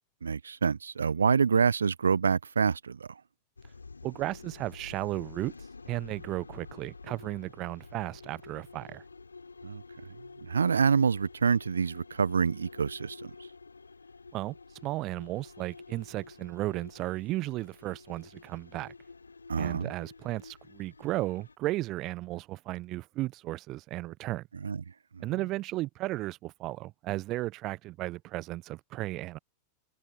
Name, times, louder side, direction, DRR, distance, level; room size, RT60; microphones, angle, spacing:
voice 1, 0.2-3.1 9.6-9.8 10.4-13.3 19.5-19.9 24.6-24.8 25.2-25.3, right 6 dB, 75° right, 1.0 m, -26 dB
sound 1, 3.6-21.6, left 4 dB, 80° left, 4.8 m, -50 dB
voice 2, 4.0-5.5 5.9-9.0 14.3-14.5 14.8-18.9 19.5-24.4 25.2-29.4, right 17 dB, 35° right, 1.0 m, -34 dB
figure-of-eight pair, 90°, 0 cm